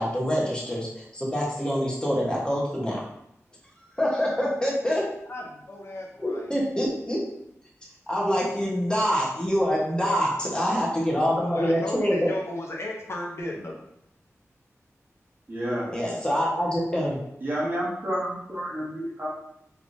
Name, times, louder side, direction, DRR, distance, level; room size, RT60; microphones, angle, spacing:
voice 1, 0.0-3.0 4.0-5.0 6.2-7.2 8.1-12.3 15.9-17.2, equal, 15° left, -4 dB, 1.1 m, -25 dB
voice 2, 5.3-6.5 11.4-13.7, left 1 dB, 55° left, -1 dB, 0.6 m, -35 dB
voice 3, 15.5-15.9 17.4-19.3, equal, 40° right, -6 dB, 1.3 m, -30 dB
3.3 x 3.3 x 2.6 m, 0.77 s
wide cardioid pair, 85°, 5 cm